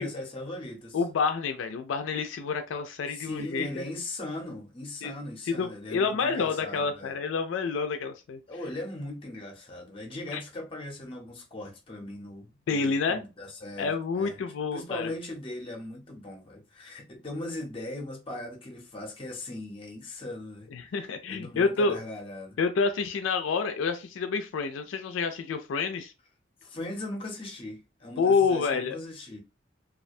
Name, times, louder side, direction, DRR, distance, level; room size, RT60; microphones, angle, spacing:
voice 1, 0.0-1.0 3.1-7.1 8.5-14.4 14.7-20.7 21.3-22.6 26.6-29.4, left 1 dB, 30° left, 0.6 m, -39 dB
voice 2, 0.9-3.7 5.0-5.1 5.5-8.4 10.3-10.4 12.7-13.2 13.8-15.1 20.7-22.0 22.6-26.1 28.2-29.0, left 5 dB, 80° left, 0.3 m, -28 dB
2.3 x 2.1 x 2.5 m
head